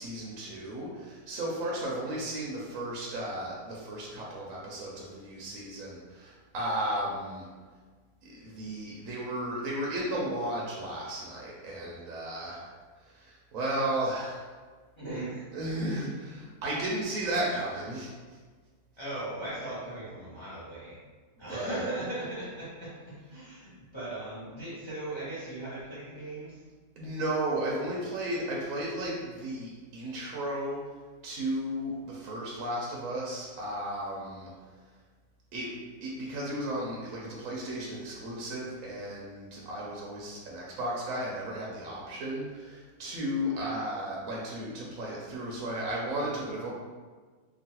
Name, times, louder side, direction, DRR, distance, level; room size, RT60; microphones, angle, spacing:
voice 1, 0.0-7.5 8.2-12.7 13.1-14.5 15.5-18.1 21.5-21.8 27.0-30.8 31.2-34.5 35.5-35.7 36.0-46.7, right 1 dB, 70° right, -4 dB, 0.9 m, -34 dB
voice 2, 15.0-15.5 19.0-21.0 21.4-26.6, right 1 dB, 30° left, -10 dB, 0.5 m, -38 dB
2.9 x 2.4 x 2.8 m, 1.5 s
omnidirectional pair, 1.7 m